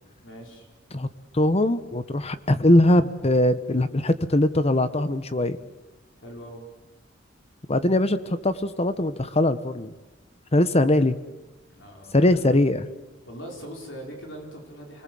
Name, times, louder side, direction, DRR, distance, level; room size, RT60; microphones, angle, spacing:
voice 1, 0.2-0.7 6.2-6.6 11.7-12.6 13.2-15.0, equal, 70° left, 1 dB, 5.0 m, -41 dB
voice 2, 1.3-5.6 7.7-9.9 10.5-11.2 12.1-12.8, left 1 dB, 35° left, 12 dB, 1.2 m, -21 dB
29.0 x 20.5 x 7.8 m, 1.1 s
head